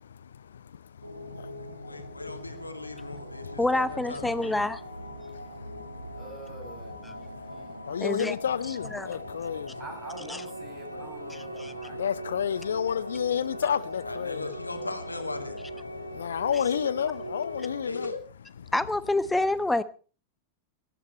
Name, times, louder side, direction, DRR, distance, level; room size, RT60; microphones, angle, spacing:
voice 1, 0.0-3.6 3.9-4.0 4.9-6.4 6.9-9.8 10.8-14.5 15.8-18.1 18.6-18.7, left 8 dB, 65° left, 0.6 m, -33 dB
sound 1, 1.0-17.9, equal, 90° right, 2.0 m, -41 dB
voice 2, 1.6-4.6 14.1-15.6 17.8-18.2, left 3 dB, 80° left, 2.1 m, -38 dB
voice 3, 3.6-4.8 8.0-8.3 8.9-9.1 10.3-10.4 11.6-11.7 18.7-19.8, left 2 dB, 5° left, 1.0 m, -26 dB
voice 4, 6.1-7.7 9.8-12.0, right 3 dB, 25° right, 5.6 m, -45 dB
18.0 x 13.5 x 4.4 m
figure-of-eight pair, 90°, 0 cm